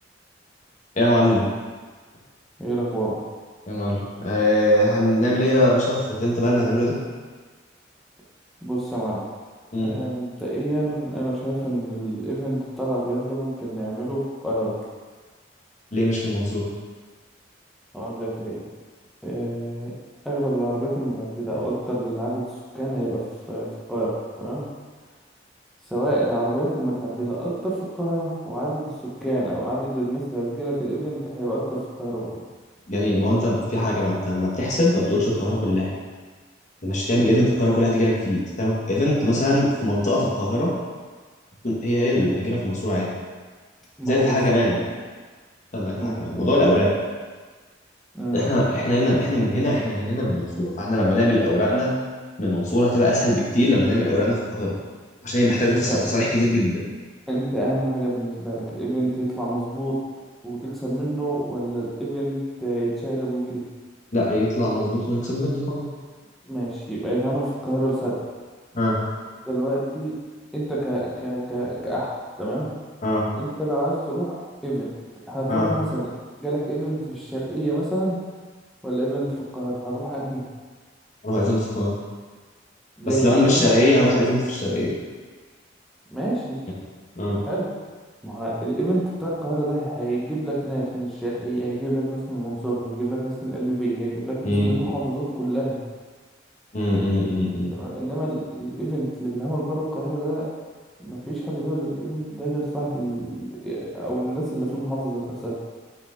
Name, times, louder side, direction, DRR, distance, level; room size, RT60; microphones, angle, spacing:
voice 1, 1.0-1.5 3.7-6.9 9.7-9.9 15.9-16.7 32.9-35.9 36.8-40.7 41.6-43.1 44.0-44.8 45.7-46.9 48.3-51.9 52.4-54.7 55.2-56.8 64.1-65.8 68.7-69.0 73.0-73.2 75.5-75.7 81.2-81.9 83.0-84.9 87.2-87.4 94.4-94.7 96.7-97.7, left 1 dB, 40° left, -4 dB, 1.2 m, -21 dB
voice 2, 2.6-3.2 8.6-9.2 9.8-14.8 17.9-18.6 19.2-19.9 20.2-22.5 22.7-24.6 25.9-32.3 37.3-37.5 44.0-44.7 46.0-46.2 48.1-48.4 55.6-56.0 57.3-60.0 60.4-63.6 66.4-68.2 69.4-70.1 70.5-72.1 72.4-72.7 73.3-74.9 75.3-76.1 76.4-78.2 78.8-80.4 83.0-83.7 86.1-86.6 87.4-87.7 88.2-95.8 97.7-100.5 101.0-105.5, right 1 dB, ahead, -8 dB, 1.0 m, -27 dB
5.7 x 4.8 x 3.7 m, 1.4 s
head